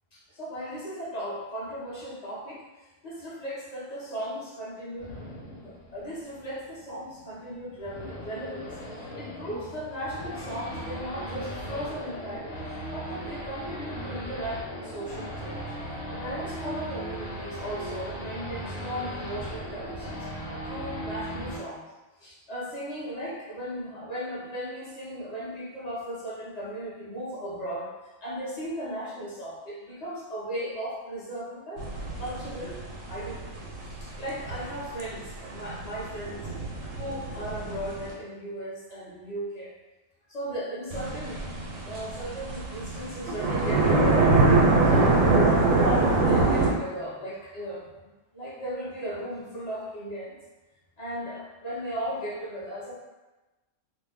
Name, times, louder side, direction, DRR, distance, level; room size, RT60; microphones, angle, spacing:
voice 1, 0.1-5.2 5.6-21.8 22.2-27.9 28.2-31.8 32.2-36.5 37.0-39.7 40.3-41.4 41.8-50.4 51.0-53.0, right 1 dB, 40° left, -7 dB, 0.7 m, -36 dB
Race car auto racing / Idling / Accelerating revving vroom, 5.0-21.6, equal, 90° left, 1.1 m, -38 dB
sound 1, 31.8-38.1 40.9-46.7, right 3 dB, 85° right, 1.0 m, -24 dB
2.5 x 2.0 x 3.4 m, 1.1 s
omnidirectional pair, 1.4 m